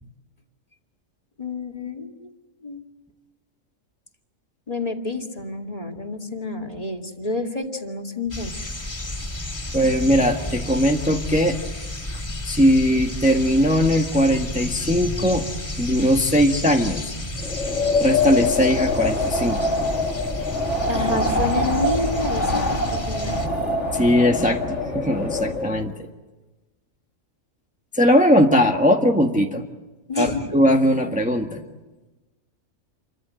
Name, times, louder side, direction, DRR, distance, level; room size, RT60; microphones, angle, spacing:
voice 1, 1.4-2.3 2.6-2.9 4.7-8.7 20.9-23.4 30.1-30.5, left 3 dB, 30° left, 2 dB, 2.5 m, -29 dB
sound 1, 8.3-23.5, left 1 dB, 15° left, 3.4 m, -32 dB
voice 2, 9.7-11.6 12.5-15.5 15.8-17.1 18.0-19.7 23.9-25.9 27.9-29.7 30.2-31.6, equal, 5° right, 2 dB, 1.5 m, -19 dB
Wind, 17.4-25.8, left 2 dB, 65° left, 2.5 m, -24 dB
28.5 x 24.0 x 7.7 m, 1.1 s
omnidirectional pair, 1.3 m